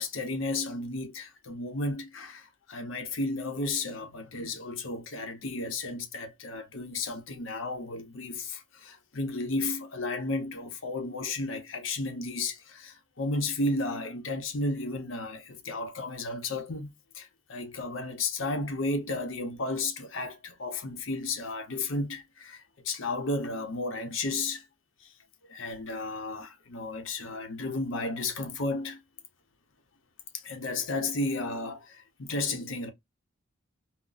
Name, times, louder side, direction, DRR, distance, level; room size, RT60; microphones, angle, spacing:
voice 1, 0.0-24.6 25.0-25.1 25.5-29.0 30.3-32.9, left 2 dB, 80° left, 0.7 m, -33 dB
3.8 x 2.1 x 2.5 m
head